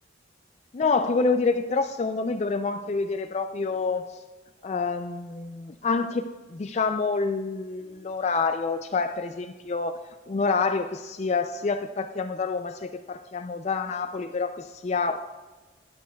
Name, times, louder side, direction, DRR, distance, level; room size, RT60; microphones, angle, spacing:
voice 1, 0.7-4.2 4.6-15.2, left 4 dB, 35° left, 8 dB, 0.3 m, -27 dB
16.5 x 10.5 x 2.3 m, 1.3 s
head